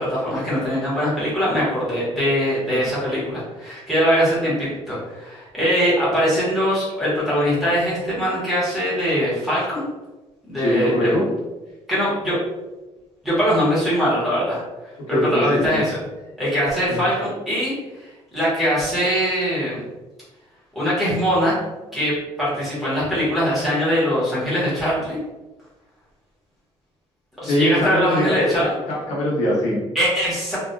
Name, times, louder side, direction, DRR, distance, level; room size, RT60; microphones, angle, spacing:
voice 1, 0.0-9.8 10.5-11.1 11.9-12.3 13.2-14.6 15.1-16.0 16.4-17.7 18.3-19.8 20.7-21.6 21.9-22.1 22.4-25.2 27.4-28.7 29.9-30.6, equal, ahead, -10 dB, 1.0 m, -21 dB
voice 2, 10.6-11.3 15.1-15.8 16.9-17.0 27.5-29.8, left 1 dB, 80° left, -6 dB, 1.0 m, -22 dB
2.6 x 2.3 x 2.2 m, 1.1 s
cardioid pair, 165°, 11 cm